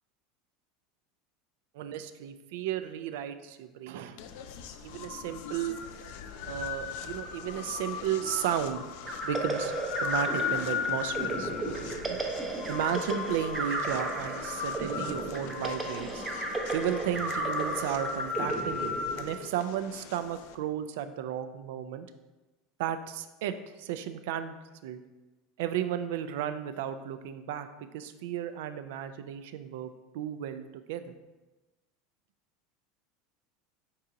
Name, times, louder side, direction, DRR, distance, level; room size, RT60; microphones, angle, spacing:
voice 1, 1.7-4.2 4.8-5.8 6.4-8.8 9.2-12.2 12.7-16.2 16.7-22.1 22.8-25.0 25.6-31.2, right 10 dB, 75° right, 10 dB, 0.3 m, -34 dB
sound 1, 4.2-20.5, left 7 dB, 70° left, 0.3 m, -37 dB
sound 2, 9.0-19.6, right 2 dB, 15° right, 0.6 m, -35 dB
4.6 x 2.8 x 3.7 m, 1.1 s
supercardioid pair, 140°, 0 cm